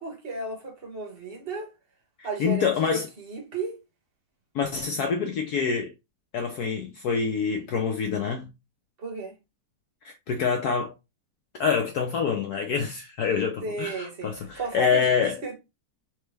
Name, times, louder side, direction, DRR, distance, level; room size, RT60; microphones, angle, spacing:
voice 1, 0.0-1.7 2.2-3.8 9.0-9.3 13.6-15.6, right 3 dB, 35° right, 1.0 m, -34 dB
voice 2, 2.2-3.1 4.5-5.9 6.3-8.5 10.0-10.9 11.6-15.4, left 6 dB, 90° left, 0.8 m, -26 dB
6.2 x 2.2 x 3.3 m
omnidirectional pair, 2.3 m